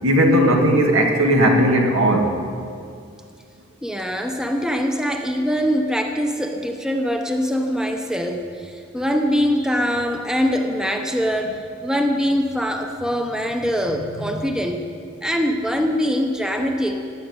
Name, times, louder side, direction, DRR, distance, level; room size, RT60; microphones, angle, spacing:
voice 1, 0.0-2.3, equal, 85° right, 1 dB, 2.1 m, -16 dB
voice 2, 3.8-14.8 15.2-17.0, equal, 5° right, 4 dB, 0.8 m, -23 dB
16.0 x 8.4 x 9.7 m, 2.3 s
head